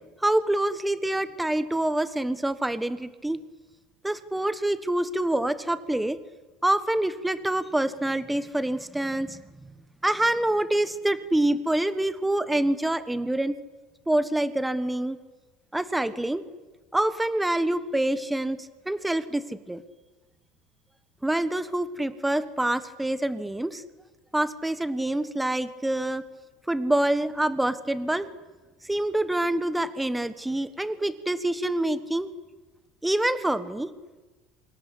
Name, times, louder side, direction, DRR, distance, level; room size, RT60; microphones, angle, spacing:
voice 1, 0.2-3.4 4.0-6.2 6.6-9.4 10.0-13.5 14.1-15.2 15.7-16.4 16.9-19.8 21.2-23.8 24.3-26.2 26.7-28.3 28.8-32.3 33.0-33.9, right 1 dB, 5° right, 14 dB, 1.3 m, -26 dB
27.5 x 24.5 x 8.4 m, 1.2 s
cardioid pair, 160°, 0 cm